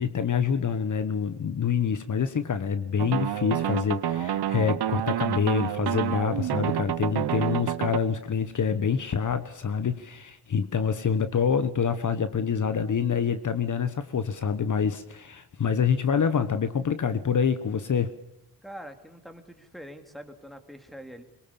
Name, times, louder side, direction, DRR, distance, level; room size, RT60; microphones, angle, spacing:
voice 1, 0.0-18.1, left 6 dB, 50° left, 11 dB, 1.2 m, -26 dB
sound 1, 3.0-8.0, right 11 dB, 75° right, 1.0 m, -28 dB
voice 2, 18.6-21.2, equal, ahead, 7 dB, 2.7 m, -44 dB
23.0 x 22.5 x 7.1 m, 0.85 s
wide cardioid pair, 120°, 39 cm